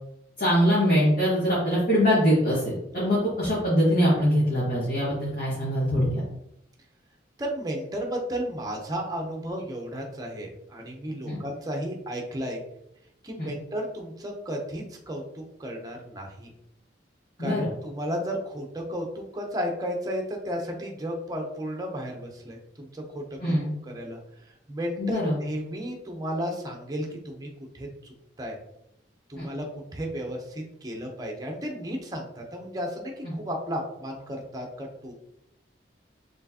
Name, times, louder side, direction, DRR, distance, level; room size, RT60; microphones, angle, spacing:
voice 1, 0.4-6.2 11.3-11.4 13.4-13.5 17.4-17.7 23.4-23.7 25.0-25.4 29.3-29.5 33.2-33.3, equal, 45° left, -9 dB, 1.5 m, -23 dB
voice 2, 7.4-12.6 13.2-16.5 17.4-23.6 23.8-24.2 24.7-27.9 28.4-28.6 29.3-29.7 29.9-35.1, equal, 20° right, 1 dB, 0.7 m, -33 dB
4.4 x 3.2 x 2.8 m, 0.79 s
head